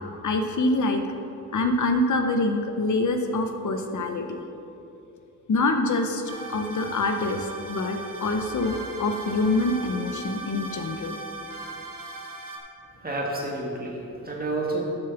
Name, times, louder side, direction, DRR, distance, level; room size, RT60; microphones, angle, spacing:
voice 1, 0.2-1.0 1.5-4.4 5.5-6.2 6.5-11.2, left 2 dB, 65° left, 5 dB, 0.8 m, -25 dB
sound 1, 6.3-12.6, right 2 dB, 80° right, 1.4 m, -38 dB
voice 2, 13.0-14.8, right 2 dB, 25° right, -2 dB, 1.7 m, -30 dB
7.0 x 7.0 x 7.0 m, 2.8 s
wide cardioid pair, 150°, 33 cm